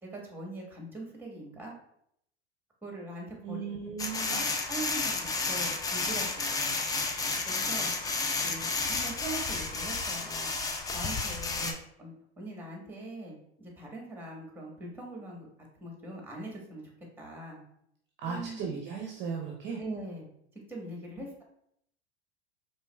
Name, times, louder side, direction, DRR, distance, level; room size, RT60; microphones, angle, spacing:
voice 1, 0.0-1.7 2.8-3.7 4.1-6.7 7.5-7.9 8.4-10.5 10.9-11.7 12.0-15.5 15.8-16.9 17.2-17.6 18.3-18.7 19.8-20.3 20.7-21.4, right 1 dB, 5° right, -1 dB, 1.3 m, -42 dB
voice 2, 3.4-4.4 8.5-8.6 11.6-11.8 18.2-19.8 21.2-21.3, right 6 dB, 35° right, 0 dB, 0.6 m, -37 dB
sound 1, 4.0-11.7, left 3 dB, 10° left, 0.3 m, -31 dB
4.4 x 3.1 x 2.2 m, 0.72 s
hypercardioid pair, 95°, 32 cm